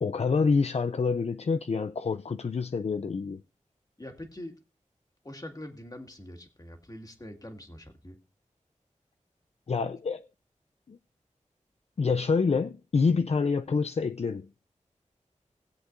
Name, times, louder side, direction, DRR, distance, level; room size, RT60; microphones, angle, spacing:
voice 1, 0.0-3.4 9.7-10.3 10.9-11.0 12.0-14.5, left 4 dB, 55° left, 0.4 m, -27 dB
voice 2, 4.0-4.6 5.2-8.2, left 1 dB, 30° left, 1.9 m, -43 dB
19.5 x 7.8 x 2.6 m
wide cardioid pair, 55°, 13 cm